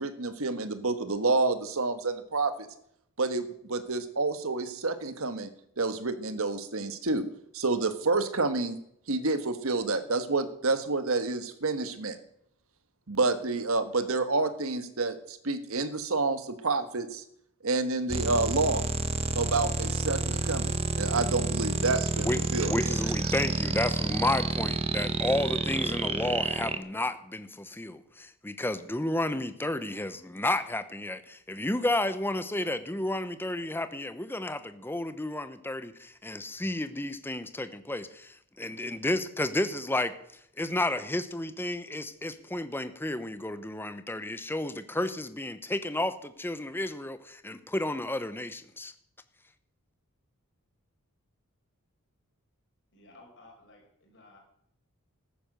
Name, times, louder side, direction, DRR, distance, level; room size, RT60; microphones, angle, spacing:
voice 1, 0.0-2.5 3.2-5.5 5.8-7.2 7.5-8.8 9.1-12.2 13.1-17.2 17.6-18.8 19.3-22.9, right 3 dB, 65° right, 10 dB, 1.4 m, -29 dB
sound 1, 18.1-26.8, right 3 dB, 25° right, 1.0 m, -29 dB
voice 2, 22.2-40.1 40.6-48.9, left 1 dB, 10° left, 11 dB, 0.8 m, -32 dB
voice 3, 52.9-54.4, left 2 dB, 55° left, 0 dB, 5.3 m, -55 dB
14.0 x 10.0 x 6.6 m, 0.71 s
head